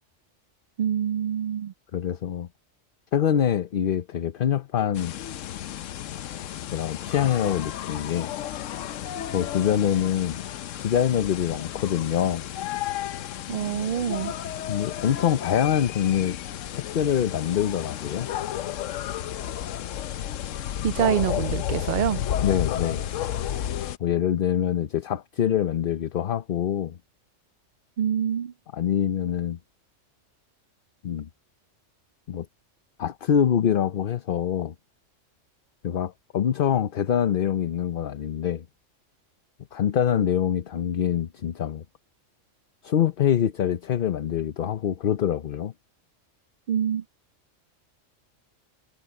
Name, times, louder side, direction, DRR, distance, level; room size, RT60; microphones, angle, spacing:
voice 1, 0.8-1.7 13.5-14.3 20.8-22.2 28.0-28.5 46.7-47.0, right 9 dB, 65° right, 0.5 m, -26 dB
voice 2, 1.9-2.5 3.1-5.1 6.7-8.3 9.3-10.4 10.8-12.4 14.7-16.4 16.7-18.3 22.4-23.1 24.0-27.0 28.7-29.6 31.0-31.3 32.3-32.5 33.0-34.7 35.8-38.6 39.7-41.8 42.8-45.7, left 9 dB, 50° left, 0.8 m, -25 dB
sound 1, 4.9-24.0, left 11 dB, 90° left, 1.0 m, -32 dB
omnidirectional pair, 1.3 m